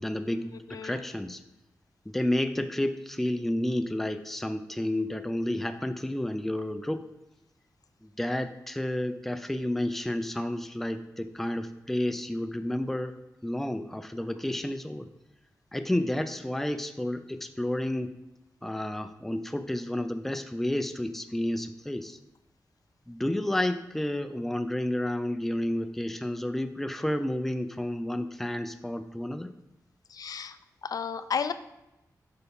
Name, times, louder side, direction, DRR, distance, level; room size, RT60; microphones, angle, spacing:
voice 1, 0.0-1.4 2.1-7.1 8.0-13.1 13.4-15.1 15.7-18.1 18.6-22.2 23.1-29.5, left 1 dB, 5° left, 9 dB, 0.4 m, -31 dB
voice 2, 0.7-1.1 30.1-30.6 30.8-31.5, left 6 dB, 70° left, 11 dB, 0.4 m, -32 dB
8.0 x 5.7 x 3.6 m, 0.92 s
wide cardioid pair, 145°, 7 cm